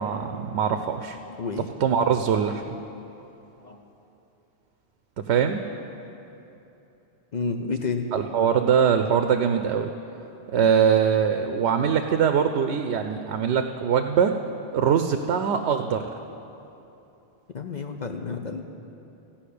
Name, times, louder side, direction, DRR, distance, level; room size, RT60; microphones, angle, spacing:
voice 1, 0.0-1.2 1.8-2.8 5.2-5.6 8.1-9.9 10.5-14.4 14.7-16.1, right 7 dB, 80° right, 7 dB, 0.9 m, -22 dB
voice 2, 1.3-1.7 3.6-3.8 7.3-8.1 17.5-18.6, left 4 dB, 50° left, 4 dB, 0.6 m, -30 dB
14.5 x 5.7 x 8.5 m, 3.0 s
omnidirectional pair, 1.1 m